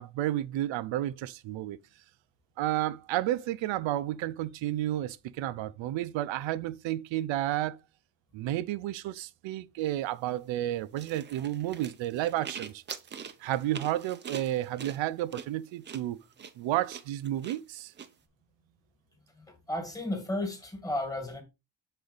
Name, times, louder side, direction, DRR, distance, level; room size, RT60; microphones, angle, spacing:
voice 1, 0.0-1.8 2.6-7.8 8.3-12.8 13.4-16.2 16.6-17.9, right 14 dB, 85° right, 0.7 m, -31 dB
sound 1, 11.0-18.1, right 7 dB, 25° right, 0.4 m, -43 dB
voice 2, 19.4-21.4, left 1 dB, 10° left, 1.5 m, -33 dB
6.9 x 4.1 x 3.9 m
cardioid pair, 165°, 44 cm